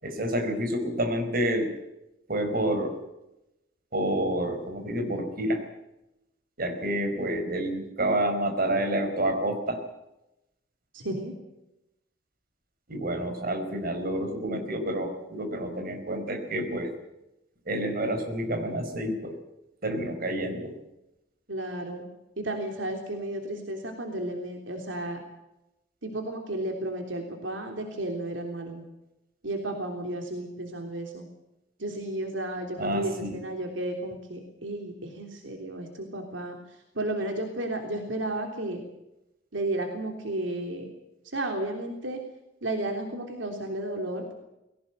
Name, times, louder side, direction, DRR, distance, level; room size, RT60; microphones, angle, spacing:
voice 1, 0.0-1.7 2.3-3.0 3.9-5.6 6.6-9.8 12.9-16.9 17.7-19.4 19.8-20.7 32.8-33.4, right 1 dB, 50° right, 6 dB, 4.6 m, -29 dB
voice 2, 10.9-11.3 21.5-22.1 22.4-25.2 26.0-28.8 29.4-31.2 31.8-36.5 36.9-38.8 39.5-40.9 41.3-42.2 42.6-44.3, right 1 dB, 75° right, 3 dB, 3.4 m, -33 dB
20.5 x 18.0 x 7.9 m, 0.91 s
head